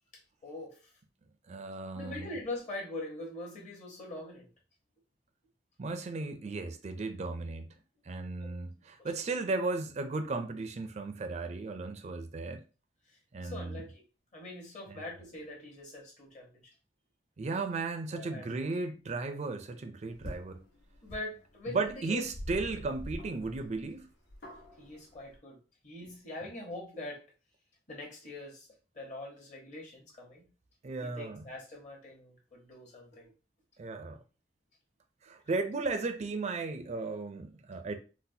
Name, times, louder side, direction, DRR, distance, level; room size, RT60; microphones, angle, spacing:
voice 1, 0.1-0.9 1.9-4.5 8.0-9.1 13.1-14.0 14.3-16.6 18.1-18.7 21.0-22.2 22.7-22.8 24.8-25.6 25.8-27.2 27.9-28.7 28.9-30.5 31.0-33.3, left 2 dB, 45° left, 1.1 m, -43 dB
voice 2, 1.5-2.3 5.8-7.7 8.1-12.6 13.3-13.8 14.9-15.0 17.4-20.6 21.7-24.1 30.8-31.4 33.8-34.2 35.2-38.0, right 3 dB, 40° right, 0.4 m, -35 dB
sound 1, 20.1-25.4, equal, 75° left, 1.3 m, -46 dB
3.9 x 2.1 x 2.7 m
head